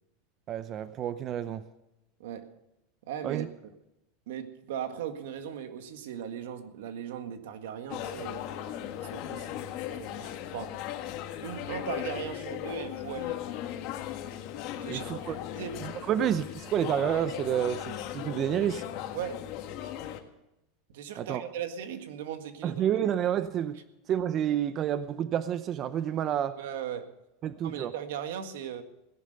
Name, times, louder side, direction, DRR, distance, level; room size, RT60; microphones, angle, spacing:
voice 1, 0.5-1.6 3.2-3.5 14.9-15.4 15.8-18.8 21.2-21.4 22.6-23.8 24.1-26.6 27.4-27.9, right 10 dB, 35° right, 13 dB, 0.6 m, -29 dB
voice 2, 2.2-2.5 3.1-3.7 4.3-8.4 9.0-10.7 11.4-13.4 14.8-15.1 15.5-15.8 19.1-19.5 20.9-22.8 26.6-27.1 27.6-28.8, right 9 dB, 80° right, 8 dB, 1.8 m, -38 dB
sound 1, 7.9-20.2, left 11 dB, 50° left, 1.7 m, -37 dB
17.5 x 11.0 x 6.6 m, 0.91 s
supercardioid pair, 145°, 0 cm